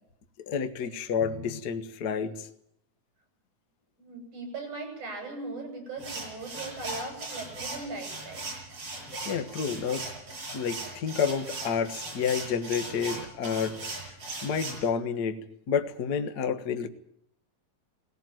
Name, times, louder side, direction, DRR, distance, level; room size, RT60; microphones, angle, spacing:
voice 1, 0.5-2.5 9.2-10.1 10.5-13.8 14.0-14.1 14.4-15.4 15.7-16.9, left 6 dB, 50° left, 8 dB, 1.2 m, -29 dB
voice 2, 4.0-8.4, right 3 dB, 65° right, 3 dB, 9.2 m, -39 dB
sound 1, 6.0-14.9, right 2 dB, 45° right, 8.2 m, -38 dB
19.5 x 17.0 x 9.2 m, 0.72 s
omnidirectional pair, 3.8 m